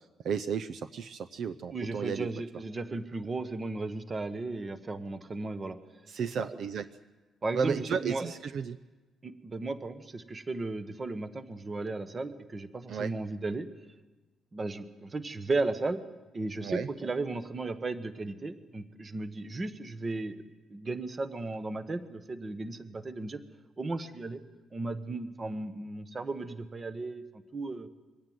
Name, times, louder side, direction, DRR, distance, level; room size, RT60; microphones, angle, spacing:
voice 1, 0.2-2.3 6.1-6.8 7.5-8.8 12.9-13.1 16.6-16.9, right 6 dB, 55° right, 11 dB, 0.7 m, -33 dB
voice 2, 1.7-5.8 6.4-6.6 7.4-8.3 9.2-13.7 14.5-16.0 16.3-20.4 20.7-23.4 23.8-24.4 24.7-27.2 27.5-27.9, right 3 dB, 20° right, 10 dB, 1.1 m, -35 dB
23.0 x 17.5 x 9.4 m, 1.2 s
cardioid pair, 170°, 0 cm